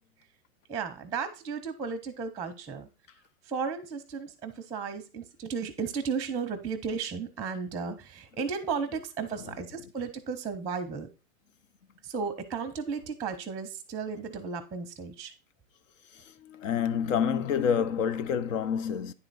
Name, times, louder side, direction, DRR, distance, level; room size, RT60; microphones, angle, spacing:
voice 1, 0.7-2.9 3.4-11.1 12.0-15.3, right 5 dB, 10° right, 0.6 m, -34 dB
voice 2, 16.1-19.1, left 7 dB, 75° left, 0.9 m, -28 dB
9.9 x 4.4 x 4.0 m
supercardioid pair, 140°, 39 cm